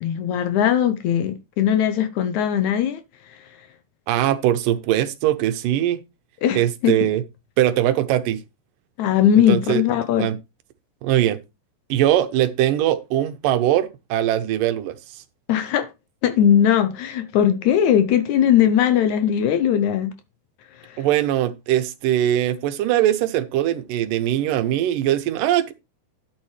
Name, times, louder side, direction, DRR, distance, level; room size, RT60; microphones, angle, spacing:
voice 1, 0.0-3.7 6.4-7.1 9.0-10.3 15.5-15.9 16.2-20.1 20.6-21.1, left 9 dB, 70° left, 2.0 m, -20 dB
voice 2, 4.1-6.0 6.6-7.2 7.6-8.4 9.5-9.8 10.2-10.4 11.0-11.4 11.9-14.9 21.0-25.7, right 12 dB, 85° right, 2.5 m, -21 dB
12.0 x 7.3 x 3.3 m
omnidirectional pair, 3.8 m